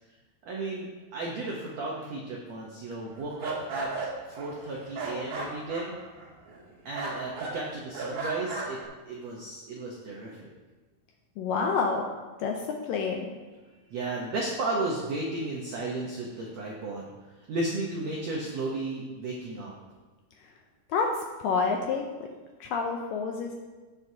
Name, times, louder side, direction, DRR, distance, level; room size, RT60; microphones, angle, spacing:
voice 1, 0.4-3.9 4.3-5.9 6.8-8.8 9.1-10.5 13.9-17.1 17.3-19.7, right 2 dB, 85° right, -2 dB, 1.5 m, -34 dB
sound 1, 3.1-6.7 6.9-7.6 7.9-8.8, right 3 dB, 65° right, 3.0 m, -36 dB
voice 2, 11.4-12.1 12.4-13.3 20.9-21.1 21.4-22.0 22.6-23.5, left 5 dB, 80° left, 2 dB, 2.0 m, -28 dB
16.0 x 6.1 x 2.8 m, 1.3 s
omnidirectional pair, 4.6 m